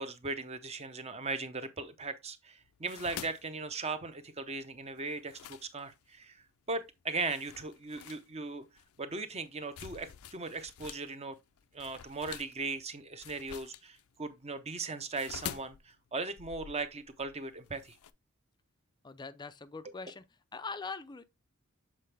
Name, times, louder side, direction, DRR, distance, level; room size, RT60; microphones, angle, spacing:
voice 1, 0.0-8.6 9.0-11.4 11.7-18.0, right 3 dB, 30° right, 0.7 m, -38 dB
sound 1, 2.6-6.2 6.8-6.9 7.3-11.1 11.3-18.1, left 9 dB, 80° left, 0.5 m, -47 dB
voice 2, 19.0-20.3 20.5-21.2, left 4 dB, 20° left, 0.4 m, -42 dB
7.5 x 4.2 x 3.3 m
head